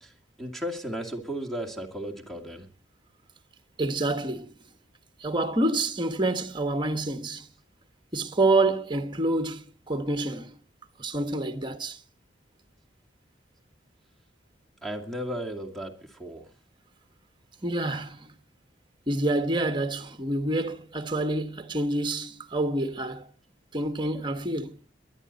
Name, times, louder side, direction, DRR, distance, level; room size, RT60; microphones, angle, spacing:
voice 1, 0.0-2.7 14.8-16.5, equal, ahead, 2.2 m, -35 dB
voice 2, 3.8-4.5 5.2-7.5 8.1-10.6 11.0-12.0 17.6-18.3 19.1-23.3 23.7-24.8, right 2 dB, 25° right, 1.3 m, -27 dB
22.5 x 11.5 x 4.1 m
head